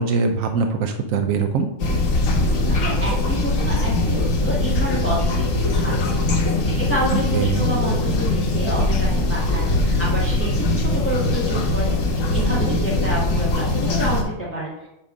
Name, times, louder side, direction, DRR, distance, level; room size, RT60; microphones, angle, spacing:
voice 1, 0.0-1.7 7.3-7.7, right 5 dB, 90° right, 5 dB, 1.1 m, -22 dB
sound 1, 1.8-14.2, left 2 dB, 85° left, 1.5 m, -21 dB
voice 2, 2.4-14.9, right 1 dB, 10° left, -6 dB, 1.8 m, -29 dB
8.7 x 3.8 x 5.4 m, 0.87 s
omnidirectional pair, 1.3 m